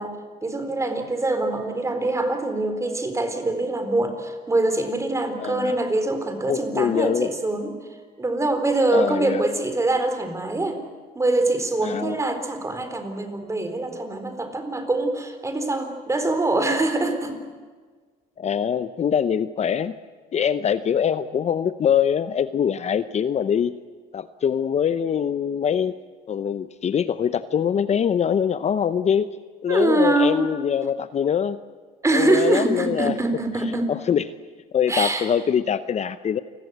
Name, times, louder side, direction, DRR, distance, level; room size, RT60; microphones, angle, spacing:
voice 1, 0.0-7.7 8.2-10.8 11.1-17.4 29.7-30.4 32.0-33.9 34.9-35.3, right 2 dB, 15° right, 8 dB, 3.9 m, -24 dB
voice 2, 5.4-5.8 6.5-7.3 8.9-9.4 11.8-12.2 18.4-19.9 20.3-23.7 24.1-25.9 26.3-29.3 29.6-31.6 32.1-33.1 33.9-34.3 34.7-36.4, left 8 dB, 40° left, 13 dB, 0.8 m, -23 dB
28.5 x 20.5 x 8.1 m, 1.5 s
cardioid pair, 110°, 17 cm